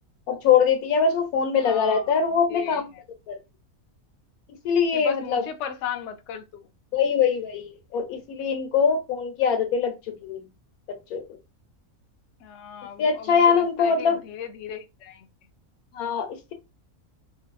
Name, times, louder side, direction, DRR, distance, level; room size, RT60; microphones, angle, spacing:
voice 1, 0.3-2.9 3.3-3.4 4.6-5.5 6.9-10.4 10.9-11.3 13.0-14.2 15.9-16.5, left 6 dB, 90° left, 1.2 m, -23 dB
voice 2, 1.6-2.2 2.5-3.0 4.9-6.7 12.4-15.3, left 8 dB, 65° left, 0.8 m, -36 dB
3.3 x 2.6 x 2.3 m
omnidirectional pair, 1.5 m